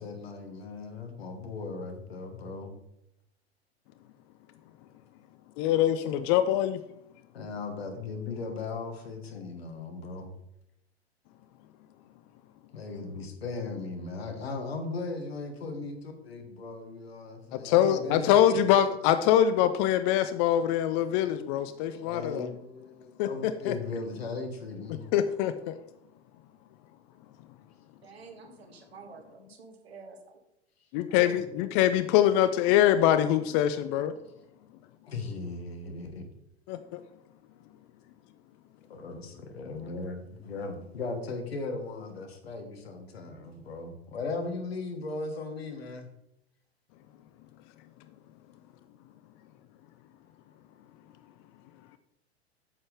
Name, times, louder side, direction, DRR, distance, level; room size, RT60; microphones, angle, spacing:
voice 1, 0.0-2.8 7.3-10.3 12.7-18.6 21.9-25.0 35.1-36.2 38.9-46.1, left 3 dB, 65° left, 5 dB, 1.7 m, -37 dB
voice 2, 5.6-6.8 17.6-22.5 23.2-23.7 25.1-25.8 30.9-34.1 36.7-37.0, left 11 dB, 25° left, 11 dB, 0.4 m, -24 dB
voice 3, 28.0-30.4 31.1-31.4, right 4 dB, 65° right, 5 dB, 1.5 m, -49 dB
9.2 x 7.4 x 3.5 m, 0.82 s
figure-of-eight pair, 95°, 33 cm